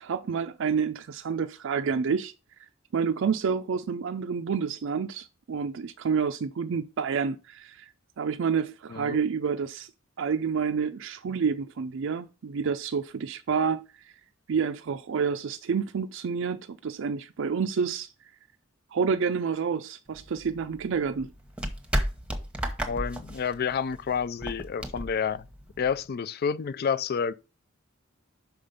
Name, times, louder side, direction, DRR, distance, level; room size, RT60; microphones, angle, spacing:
voice 1, 0.0-2.3 2.9-7.9 8.2-9.9 10.2-14.1 14.5-18.1 18.9-21.3, right 6 dB, 65° right, 0.4 m, -29 dB
sound 1, 20.1-26.1, equal, 5° right, 1.0 m, -34 dB
voice 2, 22.9-25.5 25.8-27.3, left 6 dB, 50° left, 0.4 m, -29 dB
5.9 x 5.1 x 5.5 m
head